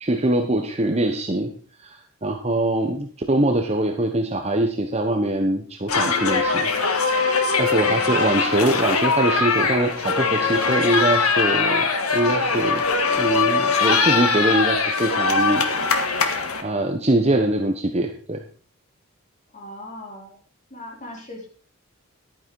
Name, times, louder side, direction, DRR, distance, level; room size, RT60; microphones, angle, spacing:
voice 1, 0.0-1.5 1.8-6.7 7.6-12.8 13.2-15.6 16.6-18.4, right 1 dB, 30° right, 4 dB, 1.1 m, -23 dB
sound 1, 5.9-16.6, left 4 dB, 85° left, 1.8 m, -21 dB
voice 2, 19.5-20.4 20.7-21.5, left 1 dB, 35° left, 0 dB, 3.9 m, -39 dB
11.5 x 9.8 x 4.8 m, 0.43 s
head